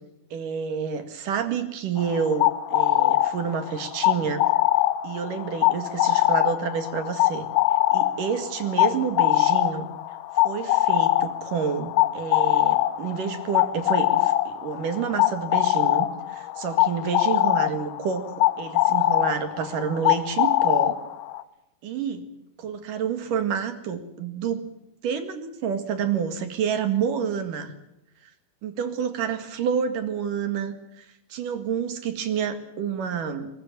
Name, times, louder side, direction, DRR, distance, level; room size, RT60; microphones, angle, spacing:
voice 1, 0.3-4.4 5.0-7.5 7.9-9.9 10.4-18.2 18.6-21.0 21.8-22.3 22.6-24.7 25.0-27.7 28.6-33.5, right 7 dB, 65° right, 9 dB, 3.4 m, -29 dB
sound 1, 2.0-21.4, left 15 dB, 70° left, 1.8 m, -23 dB
22.0 x 21.0 x 7.5 m, 0.86 s
omnidirectional pair, 4.4 m